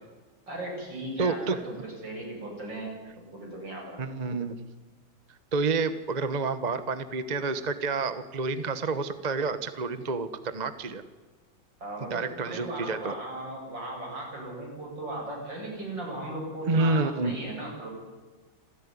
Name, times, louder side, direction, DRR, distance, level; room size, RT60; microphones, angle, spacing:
voice 1, 0.5-3.0 3.3-4.1 11.8-17.9, right 1 dB, 75° right, -1 dB, 8.8 m, -37 dB
voice 2, 1.2-1.6 4.0-4.6 5.5-11.0 12.0-13.1 16.7-17.3, right 3 dB, 25° right, 11 dB, 1.1 m, -29 dB
27.5 x 15.0 x 9.8 m, 1.3 s
omnidirectional pair, 2.0 m